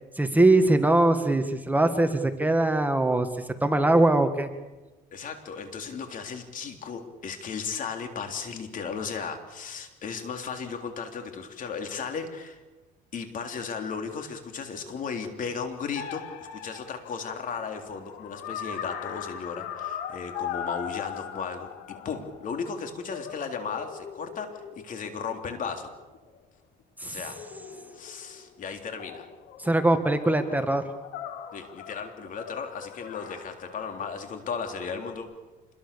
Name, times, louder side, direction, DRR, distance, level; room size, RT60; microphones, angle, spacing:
voice 1, 0.2-3.3 3.6-4.5 27.0-27.2 29.6-30.8, right 2 dB, 10° right, 7 dB, 1.7 m, -22 dB
voice 2, 5.1-12.6 13.1-25.9 27.0-27.4 27.9-29.3 31.5-35.3, left 5 dB, 50° left, 5 dB, 3.6 m, -35 dB
sound 1, 15.9-22.7 23.1-26.4 27.3-28.6 29.0-34.1 34.7-35.2, left 9 dB, 85° left, 2.7 m, -40 dB
27.0 x 22.0 x 7.0 m, 1.2 s
cardioid pair, 110°, 17 cm